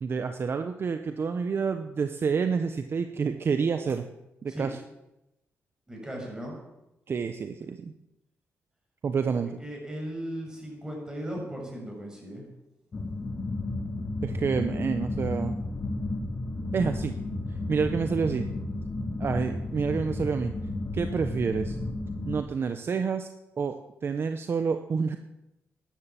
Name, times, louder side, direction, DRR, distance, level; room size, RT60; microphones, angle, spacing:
voice 1, 0.0-4.0 4.4-4.8 7.1-7.9 9.0-9.5 14.2-15.6 16.7-17.1 17.7-18.4 19.2-20.5 20.9-21.8 22.3-23.3 23.6-23.8 24.0-25.2, right 5 dB, 50° right, 8 dB, 0.9 m, -28 dB
voice 2, 5.9-6.6 9.6-12.5, equal, 15° right, -1 dB, 6.9 m, -37 dB
sound 1, 12.9-22.4, left 2 dB, 35° left, 1.8 m, -32 dB
13.5 x 11.5 x 7.6 m, 0.92 s
cardioid pair, 100°, 5 cm